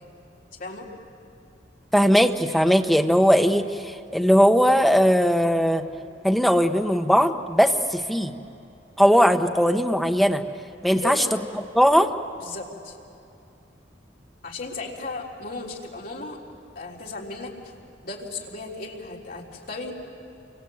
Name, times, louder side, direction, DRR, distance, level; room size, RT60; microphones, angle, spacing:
voice 1, 1.9-5.8 6.2-8.3 9.0-10.4 10.8-11.2 11.7-12.1, equal, ahead, 5 dB, 1.1 m, -19 dB
voice 2, 11.0-11.3 12.4-13.0 14.4-16.4 16.8-17.7 18.0-19.9, left 3 dB, 55° left, -2 dB, 3.8 m, -35 dB
29.0 x 24.5 x 7.8 m, 2.7 s
head